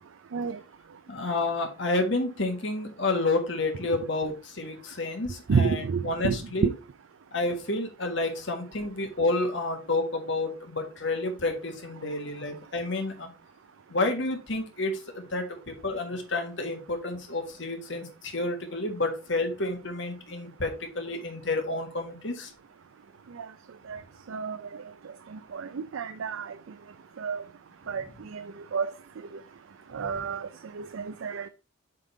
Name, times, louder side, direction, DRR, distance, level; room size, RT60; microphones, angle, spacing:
voice 1, 1.1-6.7 7.3-13.3 13.9-22.5 30.0-30.1, left 2 dB, 60° left, 1.6 m, -30 dB
voice 2, 5.5-6.4 6.6-6.7 23.9-24.0 24.3-24.6 25.5-26.5 27.2-27.4 27.9-28.0 28.3-28.4 28.7-28.9 29.9-30.5 30.7-31.5, right 5 dB, 70° right, 0.4 m, -29 dB
7.5 x 3.7 x 4.5 m
head